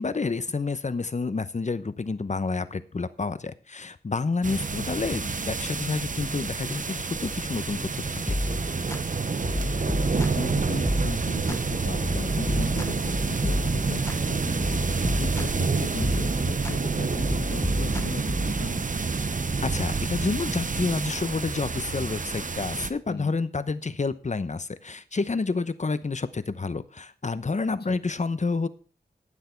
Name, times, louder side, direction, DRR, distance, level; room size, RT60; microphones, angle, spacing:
voice 1, 0.0-8.3 19.6-28.7, left 4 dB, 45° left, 14 dB, 0.9 m, -29 dB
sound 1, 4.4-22.9, right 4 dB, 50° right, 0.8 m, -28 dB
sound 2, 8.3-9.0 9.4-10.5 10.9-11.6 12.0-14.2 14.6-15.7 16.0-16.8 17.2-18.6, left 1 dB, 15° left, 0.9 m, -31 dB
voice 2, 10.1-18.8 23.1-23.4 27.9-28.0, left 4 dB, 80° left, 5 dB, 1.6 m, -37 dB
12.0 x 9.3 x 4.5 m, 0.38 s
wide cardioid pair, 85°, 17 cm